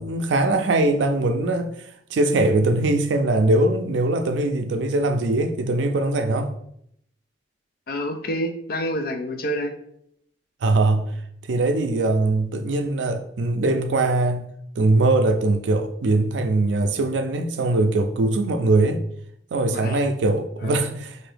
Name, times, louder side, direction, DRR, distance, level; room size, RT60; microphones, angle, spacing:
voice 1, 0.0-6.5 10.6-11.1 11.5-14.5 14.8-19.0 19.5-21.2, right 2 dB, 85° right, 0.4 m, -21 dB
voice 2, 7.9-9.8 19.7-20.0 20.6-20.8, equal, 55° left, 0.5 m, -28 dB
3.8 x 2.7 x 3.3 m
head